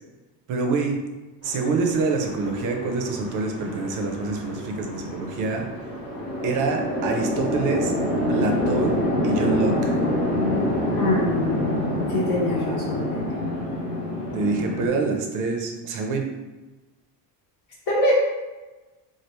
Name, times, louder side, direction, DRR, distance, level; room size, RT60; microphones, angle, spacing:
voice 1, 0.5-1.0 1.4-5.7 6.4-7.9 8.3-9.0 9.2-10.0 14.3-16.3, right 3 dB, 45° right, 3 dB, 0.5 m, -26 dB
Chatter / Traffic noise roadway noise / Train, 1.4-14.9, left 1 dB, 15° left, 0.8 m, -27 dB
voice 2, 11.0-13.2 17.9-18.1, left 1 dB, 60° left, -5 dB, 0.9 m, -25 dB
3.1 x 2.5 x 2.9 m, 1.2 s
cardioid pair, 150°, 43 cm